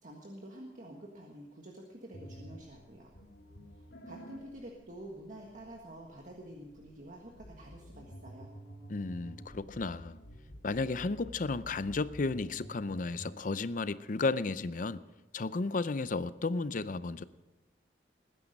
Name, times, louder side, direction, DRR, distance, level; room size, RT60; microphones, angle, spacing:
voice 1, 0.0-3.1 3.7-8.5, right 1 dB, 45° right, 0 dB, 1.6 m, -48 dB
sound 1, 2.1-13.4, equal, 85° left, 3.5 m, -51 dB
voice 2, 8.9-10.2 10.6-15.0 15.3-17.2, left 3 dB, 50° left, 15 dB, 0.5 m, -33 dB
19.5 x 10.0 x 5.3 m, 1.1 s
head